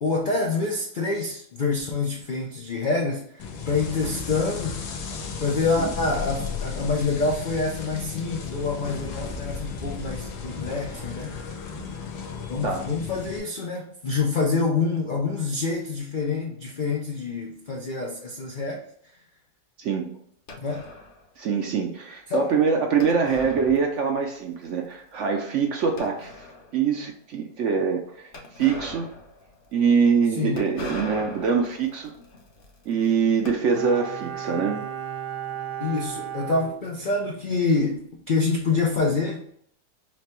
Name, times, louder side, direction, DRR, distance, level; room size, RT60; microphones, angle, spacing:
voice 1, 0.0-4.9 5.4-11.4 12.5-18.8 20.6-20.9 22.3-22.5 30.4-30.6 35.8-39.5, left 3 dB, 70° left, 0 dB, 0.4 m, -26 dB
sound 1, 3.4-13.4, left 5 dB, 90° left, 1.3 m, -34 dB
voice 2, 19.8-20.1 21.4-26.3 26.7-29.1 29.7-32.1 32.9-34.8, right 6 dB, 65° right, 3 dB, 0.8 m, -24 dB
sound 2, 20.5-21.3 23.0-24.4 24.6-24.7 25.3-25.4 26.0-26.8 28.3-34.2, left 2 dB, 45° left, 0.7 m, -41 dB
Bowed string instrument, 33.7-37.5 37.8-37.9, right 9 dB, 90° right, 0.4 m, -35 dB
5.9 x 2.2 x 2.9 m, 0.67 s
omnidirectional pair, 1.7 m